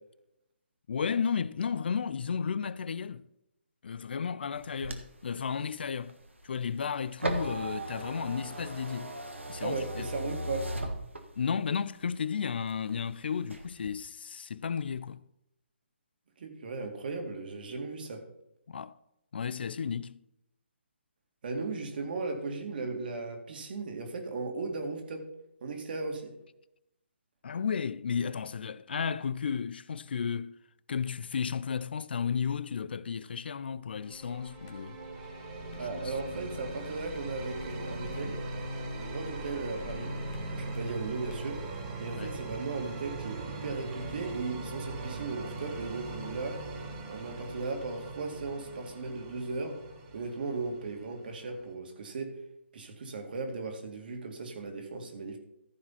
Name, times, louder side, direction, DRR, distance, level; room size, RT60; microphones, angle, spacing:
voice 1, 0.9-3.2 3.8-6.2 6.4-9.2 9.5-10.1 11.4-15.2 18.7-18.9 19.3-20.2 27.4-30.6 30.9-35.0 35.7-36.1 42.1-42.4, left 6 dB, 55° left, 0.5 m, -33 dB
sound 1, 4.5-11.6 12.1-13.0 13.4-13.9, right 1 dB, 90° right, 1.7 m, -38 dB
voice 2, 9.6-10.7 16.4-18.2 21.4-25.3 25.6-26.3 35.8-38.4 39.0-40.1 40.5-41.6 42.0-46.6 47.1-49.8 50.1-52.4 52.7-55.4, right 3 dB, 50° right, 2.3 m, -37 dB
sound 2, 34.0-51.7, right 2 dB, 30° right, 2.3 m, -40 dB
sound 3, 34.1-41.9, equal, 25° left, 1.5 m, -51 dB
14.5 x 4.8 x 5.7 m
figure-of-eight pair, 145°, 6 cm